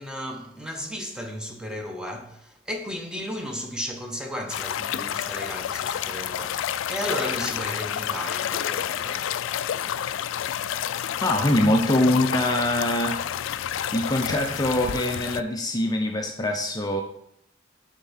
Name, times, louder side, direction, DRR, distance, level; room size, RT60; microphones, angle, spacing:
voice 1, 0.0-9.3, equal, 5° right, 0.8 m, -34 dB
sound 1, 4.5-15.4, left 10 dB, 75° left, 0.3 m, -29 dB
voice 2, 11.2-13.2 13.9-17.0, left 1 dB, 20° left, 0.5 m, -23 dB
7.4 x 3.6 x 5.6 m
head